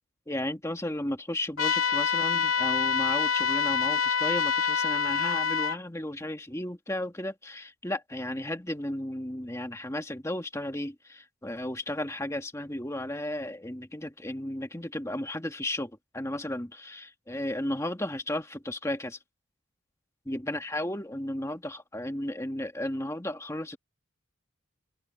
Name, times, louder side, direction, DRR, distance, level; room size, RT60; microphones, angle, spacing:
voice 1, 0.3-19.2 20.3-23.8, left 1 dB, 15° left, 1.8 m, -34 dB
sound 1, 1.6-5.8, left 6 dB, 85° left, 2.4 m, -26 dB
open air
head